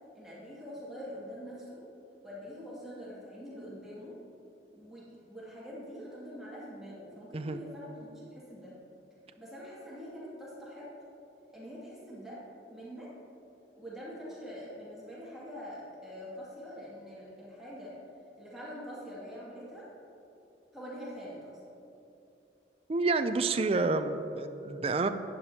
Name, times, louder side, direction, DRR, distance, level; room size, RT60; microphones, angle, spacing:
voice 1, 0.1-1.8 2.2-4.1 4.7-8.7 9.4-10.9 11.5-12.4 12.7-13.1 13.8-17.9 18.4-19.9 20.7-21.6, equal, ahead, -9 dB, 2.2 m, -44 dB
voice 2, 22.9-25.1, right 3 dB, 30° right, 9 dB, 0.4 m, -29 dB
11.0 x 10.0 x 2.8 m, 2.9 s
head